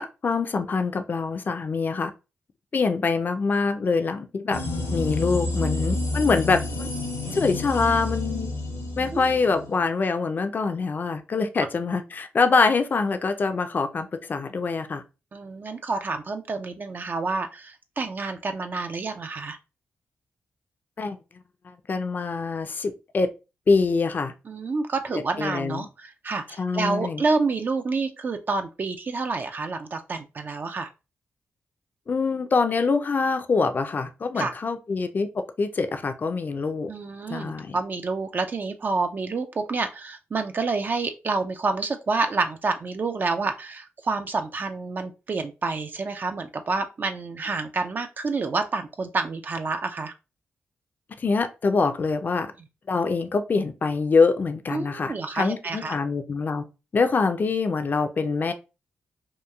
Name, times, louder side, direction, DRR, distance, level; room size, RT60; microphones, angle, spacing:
voice 1, 0.0-2.1 2.7-4.6 4.9-6.9 7.3-8.5 9.0-15.0 21.0-21.2 21.9-23.3 23.7-24.3 25.1-25.8 26.6-27.2 32.1-35.3 35.6-36.9 37.3-37.8 51.2-52.5 52.9-56.6 56.9-58.5, left 4 dB, 45° left, 0.4 m, -24 dB
sound 1, 4.5-9.8, left 2 dB, 80° left, 0.7 m, -29 dB
sound 2, 4.5-9.9, right 2 dB, 70° right, 0.9 m, -45 dB
voice 2, 15.3-19.6 24.5-30.9 34.4-34.5 36.9-50.1 54.7-56.0, right 3 dB, 45° right, 0.3 m, -28 dB
2.9 x 2.3 x 2.2 m
cardioid pair, 65°, 4 cm